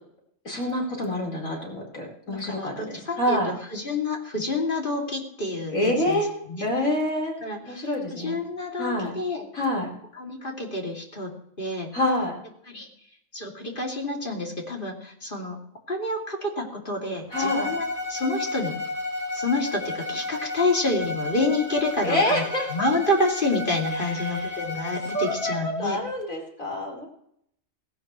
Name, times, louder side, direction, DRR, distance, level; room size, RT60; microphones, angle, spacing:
voice 1, 0.4-3.5 5.7-6.3 6.6-7.3 7.6-8.4 8.8-9.2 9.5-9.9 11.9-12.4 17.3-17.7 22.0-22.7 24.0-24.6 25.1-27.1, left 1 dB, 80° left, -2 dB, 5.0 m, -27 dB
voice 2, 2.3-6.2 6.5-6.7 7.4-9.5 10.2-11.9 12.7-12.9 13.3-15.6 15.9-18.8 19.3-22.4 22.7-26.0, left 2 dB, 40° left, 0 dB, 3.0 m, -28 dB
Bowed string instrument, 17.3-25.6, left 3 dB, 10° left, 3.6 m, -32 dB
18.0 x 17.0 x 3.2 m, 0.71 s
omnidirectional pair, 1.4 m